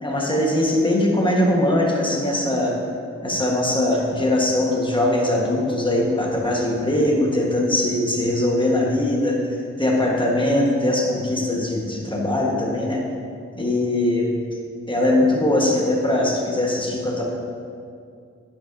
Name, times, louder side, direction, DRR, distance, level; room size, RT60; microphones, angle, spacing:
voice 1, 0.0-2.8 3.2-13.0 13.5-14.3 14.9-17.2, left 1 dB, 15° left, -2 dB, 1.4 m, -21 dB
9.7 x 5.6 x 2.7 m, 2.3 s
cardioid pair, 55°, 29 cm